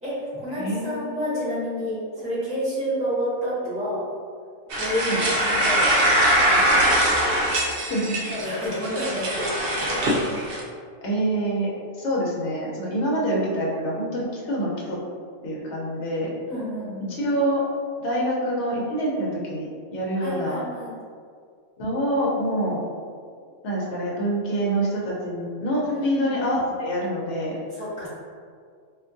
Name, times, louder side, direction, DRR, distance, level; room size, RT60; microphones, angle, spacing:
voice 1, 0.0-4.1 4.8-6.8 8.3-10.0 12.9-13.2 16.5-17.1 20.2-20.9 25.8-26.4 27.7-28.1, equal, 5° right, -12 dB, 1.4 m, -30 dB
voice 2, 0.5-1.3 5.1-5.2 7.6-8.2 8.5-8.7 11.0-11.7 12.0-15.0 15.4-16.3 17.2-17.6 18.0-20.6 21.8-22.8 23.6-27.6, right 1 dB, 65° left, -4 dB, 1.0 m, -26 dB
sound 1, 4.7-10.6, right 1 dB, 60° right, 0.6 m, -22 dB
3.4 x 2.6 x 2.5 m, 2.1 s
omnidirectional pair, 1.3 m